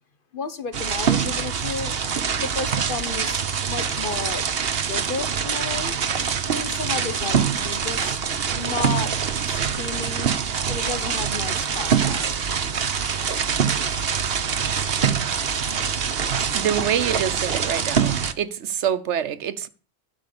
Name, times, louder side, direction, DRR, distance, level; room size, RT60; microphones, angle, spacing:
voice 1, 0.3-2.1 2.4-4.4 4.9-6.0 6.5-8.2 8.5-9.1 9.4-10.3 10.7-12.4, left 4 dB, 50° left, 1.2 m, -32 dB
sound 1, 0.7-18.3, right 7 dB, 60° right, 1.2 m, -24 dB
voice 2, 16.5-18.1 18.4-19.7, right 9 dB, 85° right, 1.1 m, -25 dB
12.5 x 5.9 x 8.5 m
omnidirectional pair, 1.1 m